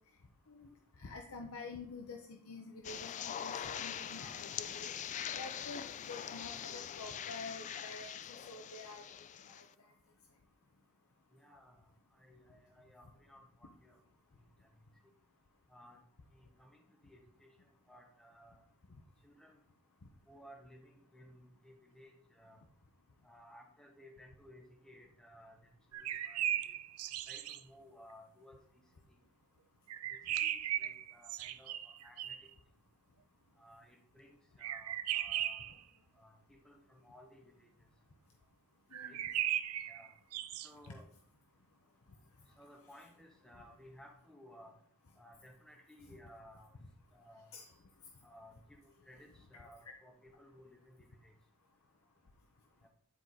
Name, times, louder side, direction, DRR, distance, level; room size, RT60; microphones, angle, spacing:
voice 1, 1.0-4.9 5.3-8.1 8.5-9.0 9.5-9.7 38.9-39.2 40.9-41.0 47.5-47.7 49.5-49.9, left 3 dB, 75° left, 3 dB, 0.8 m, -48 dB
sound 1, 2.8-9.7, left 9 dB, 35° left, 0.3 m, -43 dB
voice 2, 11.3-14.0 14.8-14.9 15.7-16.0 16.3-17.5 17.9-19.0 19.2-19.6 20.3-22.6 23.2-26.8 27.3-28.8 30.1-32.4 33.6-35.7 36.1-37.7 39.0-39.2 39.9-40.1 40.6-41.0 42.6-44.7 45.2-46.7 47.1-47.5 48.2-51.3 52.8-52.9, equal, 5° left, 1 dB, 1.0 m, -59 dB
sound 2, 25.9-27.6 29.9-32.5 34.6-35.8 38.9-40.7, right 12 dB, 85° right, 0.4 m, -37 dB
10.0 x 4.6 x 4.0 m, 0.64 s
head